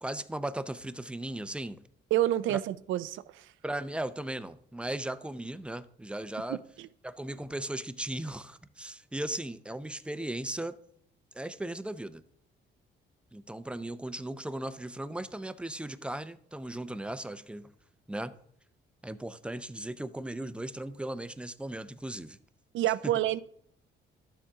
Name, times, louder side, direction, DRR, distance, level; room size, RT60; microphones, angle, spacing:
voice 1, 0.0-1.8 2.5-2.6 3.6-6.6 7.0-10.7 11.3-12.2 13.3-17.7 18.1-18.3 19.0-22.4 23.0-23.1, right 1 dB, 5° right, 0.5 m, -37 dB
voice 2, 2.1-3.5 6.5-6.9 22.7-23.4, right 13 dB, 80° right, 0.5 m, -28 dB
12.0 x 7.2 x 3.6 m
cardioid pair, 90°, 20 cm